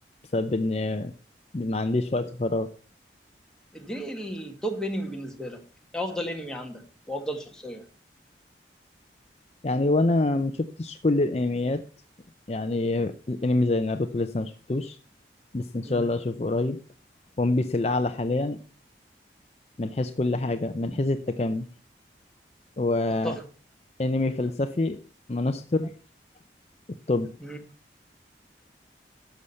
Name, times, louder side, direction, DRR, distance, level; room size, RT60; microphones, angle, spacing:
voice 1, 0.3-1.1 1.5-2.7 9.6-11.8 12.5-15.0 15.5-16.8 17.4-18.6 19.8-21.7 22.8-23.4 24.0-25.0 25.3-25.9 27.1-27.3, left 2 dB, 35° left, 9 dB, 0.5 m, -26 dB
voice 2, 3.7-5.6 5.9-7.8 15.8-16.0 23.2-23.4 27.4-27.6, equal, 5° left, 2 dB, 1.6 m, -33 dB
11.5 x 7.1 x 5.6 m, 0.39 s
head